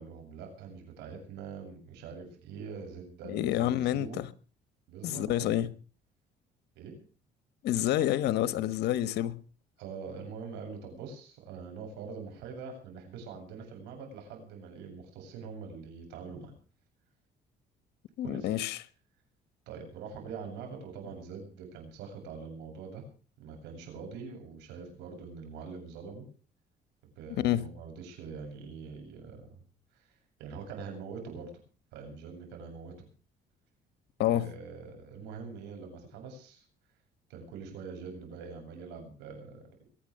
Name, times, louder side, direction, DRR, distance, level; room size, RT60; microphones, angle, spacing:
voice 1, 0.0-4.2 4.9-5.7 6.8-7.0 9.8-16.5 18.2-18.5 19.7-23.0 23.4-26.2 27.2-29.6 29.9-31.6 31.9-33.1 34.2-36.6 37.3-39.9, right 5 dB, 90° right, 7.8 m, -44 dB
voice 2, 3.2-4.3 5.0-5.7 7.6-9.4 18.2-18.8 27.3-27.7 34.2-34.5, left 12 dB, 80° left, 1.3 m, -28 dB
22.5 x 9.6 x 6.6 m
cardioid pair, 110°, 17 cm